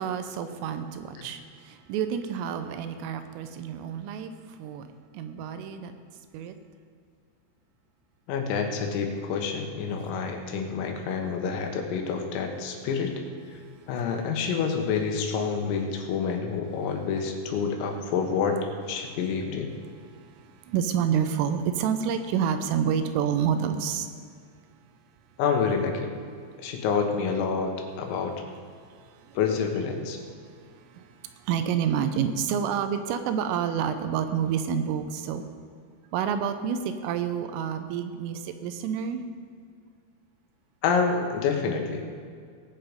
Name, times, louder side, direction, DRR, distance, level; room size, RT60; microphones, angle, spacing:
voice 1, 0.0-4.3 4.6-4.9 5.1-5.9 6.3-6.6 20.1-24.1 28.9-29.4 30.9-35.4 36.1-39.2, right 8 dB, 80° right, 9 dB, 3.3 m, -29 dB
voice 2, 8.3-13.1 13.5-13.6 13.9-18.6 18.8-19.7 25.4-26.1 26.6-28.3 29.4-30.2 40.8-42.1, left 5 dB, 90° left, 3 dB, 4.0 m, -28 dB
18.5 x 8.0 x 5.2 m, 2.1 s
omnidirectional pair, 5.9 m